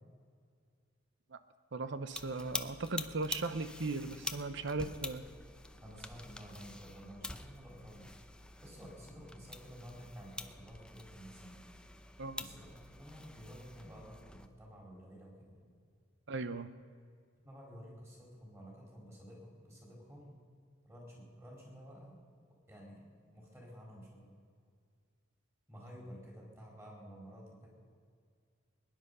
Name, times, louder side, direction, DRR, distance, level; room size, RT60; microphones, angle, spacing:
voice 1, 1.7-5.2 12.2-12.4 16.3-16.7, right 3 dB, 65° right, 12 dB, 0.7 m, -38 dB
sound 1, 2.1-14.5, left 2 dB, 5° left, 0.6 m, -46 dB
voice 2, 5.8-8.2 8.6-11.6 12.4-15.6 17.4-20.4 20.8-22.2 22.7-23.0 23.3-24.3 25.7-27.7, equal, 15° right, -2 dB, 4.3 m, -52 dB
21.5 x 10.5 x 5.5 m, 2.1 s
head